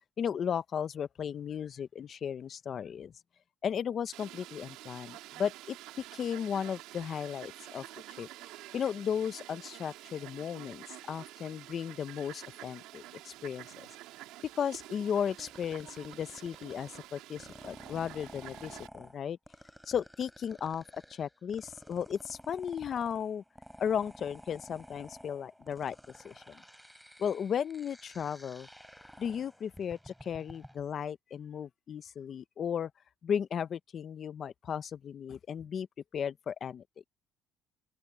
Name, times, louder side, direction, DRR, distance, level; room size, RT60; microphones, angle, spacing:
voice 1, 0.2-3.1 3.6-5.8 6.1-7.8 8.2-8.3 8.7-13.7 14.6-19.4 19.9-23.4 23.8-26.0 26.2-26.6 27.2-28.7 29.2-32.9 33.2-35.9 36.1-36.8, left 8 dB, 40° left, 0.8 m, -35 dB
Fowl, 4.1-18.9, right 16 dB, 85° right, 3.0 m, -49 dB
sound 1, 15.3-30.8, equal, ahead, 6.2 m, -53 dB
open air
cardioid pair, 135°, 0 cm